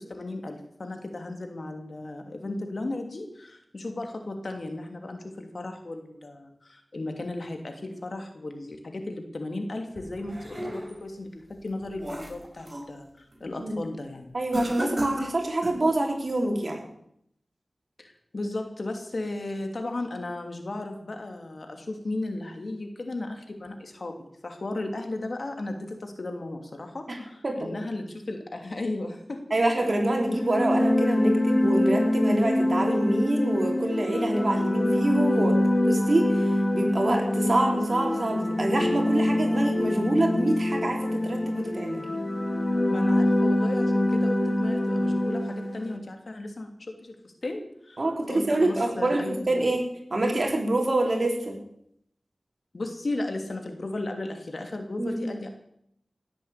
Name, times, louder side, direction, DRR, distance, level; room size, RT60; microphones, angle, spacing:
voice 1, 0.0-14.3 18.0-29.4 42.9-48.0 48.3-49.7 52.7-55.5, left 2 dB, 65° left, 5 dB, 2.9 m, -35 dB
sound 1, 10.0-11.1 11.6-12.9 13.3-13.6 14.5-15.9, equal, 35° right, 5.7 m, -36 dB
voice 2, 14.3-16.8 27.1-27.2 27.4-27.7 29.5-35.6 35.8-42.0 48.0-49.8 50.1-51.6 55.0-55.3, right 1 dB, 55° right, 1 dB, 4.2 m, -26 dB
sound 2, 30.2-46.0, left 1 dB, 40° left, 2.5 m, -25 dB
18.0 x 8.4 x 8.3 m, 0.73 s
cardioid pair, 45°, 0 cm